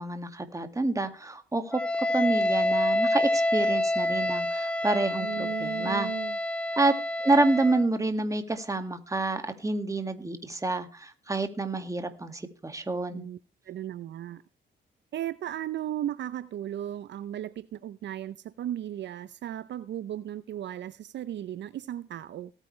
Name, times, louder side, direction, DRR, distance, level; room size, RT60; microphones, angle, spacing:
voice 1, 0.0-6.1 6.8-6.9 7.2-13.2, right 2 dB, 15° right, 2.1 m, -28 dB
Wind instrument woodwind instrument, 1.7-7.9, left 1 dB, 5° left, 0.6 m, -27 dB
voice 2, 5.2-6.4 13.1-13.4 13.7-14.4 15.1-22.5, right 11 dB, 65° right, 0.6 m, -36 dB
18.5 x 9.1 x 3.2 m
cardioid pair, 90°, 20 cm